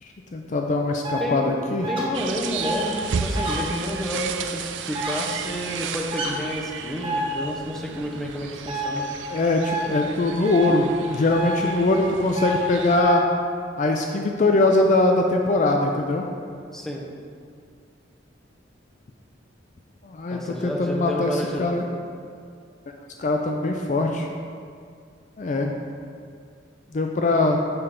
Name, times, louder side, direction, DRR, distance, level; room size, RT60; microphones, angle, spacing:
voice 1, 0.0-1.9 9.3-13.2 13.8-16.3 20.0-21.8 23.2-24.3 25.4-25.7 26.9-27.6, left 2 dB, 40° left, 2 dB, 0.4 m, -22 dB
sound 1, 1.0-1.2 1.8-2.0 2.6-2.8 3.3-3.6 4.9-5.1 6.1-6.3 7.0-7.2 8.7-8.9 9.6-9.8 10.4-10.7 11.3-11.5 12.4-12.5 13.0-13.1, right 2 dB, 25° right, 1.0 m, -28 dB
voice 2, 1.9-9.1 16.7-17.0 20.3-21.9, equal, ahead, -2 dB, 0.6 m, -30 dB
sound 2, 2.1-13.0, right 6 dB, 70° right, 0.4 m, -34 dB
6.7 x 5.5 x 3.7 m, 2.3 s
head